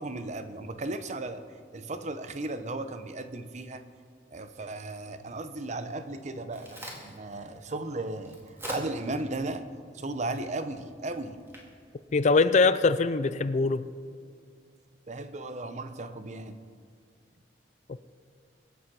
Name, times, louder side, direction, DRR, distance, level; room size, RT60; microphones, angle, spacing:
voice 1, 0.0-1.4 1.7-3.8 4.3-9.7 9.9-11.4 15.1-16.6, right 2 dB, 40° right, 10 dB, 0.7 m, -36 dB
Crack, 6.1-13.0, equal, 15° right, 2.0 m, -46 dB
voice 2, 12.1-13.9, left 4 dB, 40° left, 14 dB, 0.4 m, -22 dB
23.0 x 7.7 x 4.7 m, 2.1 s
head